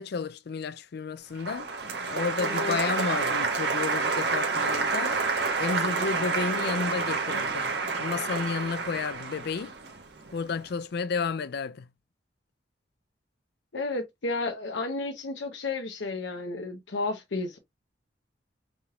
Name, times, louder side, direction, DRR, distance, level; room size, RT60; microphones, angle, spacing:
voice 1, 0.0-5.2 5.5-9.7 10.3-11.9, left 5 dB, 60° left, 0.4 m, -32 dB
Applause, 1.4-10.5, right 4 dB, 65° right, 1.4 m, -29 dB
voice 2, 2.4-2.8 13.7-17.6, left 3 dB, 80° left, 0.8 m, -32 dB
5.1 x 3.4 x 2.3 m
head